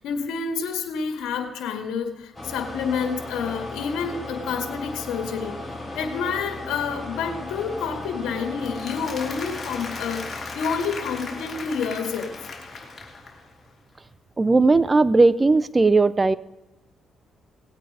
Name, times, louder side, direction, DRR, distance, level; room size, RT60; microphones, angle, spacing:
voice 1, 0.0-5.6 6.0-12.5, left 6 dB, 85° left, 6 dB, 1.9 m, -29 dB
sound 1, 2.4-13.6, left 2 dB, 10° left, 3.4 m, -37 dB
Applause, 8.5-13.5, left 4 dB, 40° left, 3.2 m, -37 dB
voice 2, 14.4-16.4, right 3 dB, 20° right, 17 dB, 0.6 m, -17 dB
18.5 x 8.5 x 4.9 m, 1.1 s
cardioid pair, 90°, 0 cm